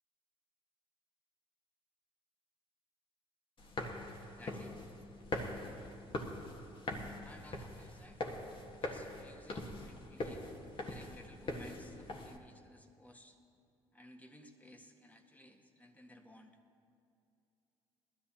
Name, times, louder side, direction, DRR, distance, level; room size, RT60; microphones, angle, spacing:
sound 1, 3.6-12.4, left 2 dB, 40° left, 1.7 m, -43 dB
voice 1, 4.2-4.7 7.2-8.2 8.8-10.4 10.8-13.4 13.9-16.6, left 1 dB, 10° left, 2 dB, 1.8 m, -57 dB
21.0 x 13.5 x 2.9 m, 2.6 s
hypercardioid pair, 55°, 14 cm